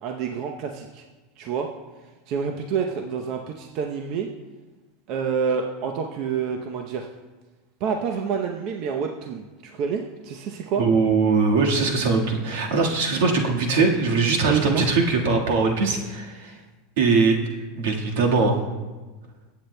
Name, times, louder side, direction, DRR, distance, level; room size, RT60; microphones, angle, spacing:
voice 1, 0.0-1.0 1.4-1.7 2.3-4.3 5.1-7.1 7.8-10.8 14.5-14.9, right 6 dB, 50° right, 3 dB, 0.7 m, -27 dB
voice 2, 10.8-16.5 17.0-17.4 17.8-18.6, right 4 dB, 80° right, 1 dB, 1.5 m, -21 dB
20.5 x 8.6 x 2.2 m, 1.2 s
supercardioid pair, 140°, 0 cm